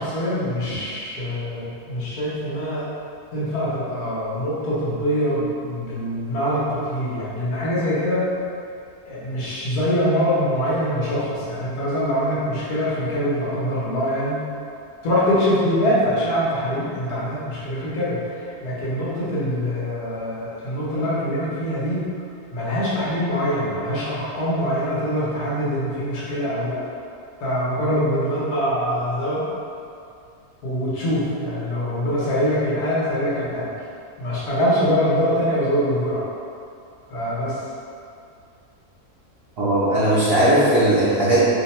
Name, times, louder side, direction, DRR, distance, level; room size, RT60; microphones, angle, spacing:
voice 1, 0.0-2.9 3.3-8.2 9.1-14.4 15.0-22.0 22.5-26.8 27.4-29.4 30.6-33.7 34.2-36.2 37.1-37.6, equal, 80° left, -8 dB, 1.5 m, -24 dB
voice 2, 39.6-41.5, right 1 dB, 55° right, -10 dB, 0.7 m, -18 dB
3.2 x 2.2 x 4.1 m, 2.4 s
omnidirectional pair, 1.6 m